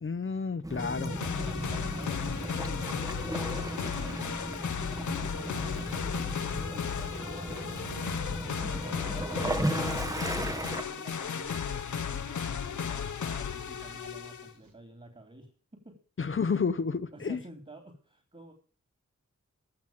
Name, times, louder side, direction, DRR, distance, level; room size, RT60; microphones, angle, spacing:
voice 1, 0.0-1.2 16.2-17.4, left 5 dB, 45° left, 13 dB, 0.7 m, -30 dB
Waves surf / Splash splatter / Trickle dribble, 0.6-10.8, right 1 dB, 10° right, 0.9 m, -35 dB
sound 1, 0.8-14.5, left 7 dB, 85° left, 0.8 m, -35 dB
voice 2, 1.3-8.0 8.5-16.0 17.1-18.5, right 1 dB, 25° right, 5 dB, 2.9 m, -50 dB
Chewing mastication, 7.5-14.7, right 4 dB, 80° right, 2.7 m, -56 dB
15.0 x 6.2 x 8.6 m, 0.42 s
cardioid pair, 55°, 29 cm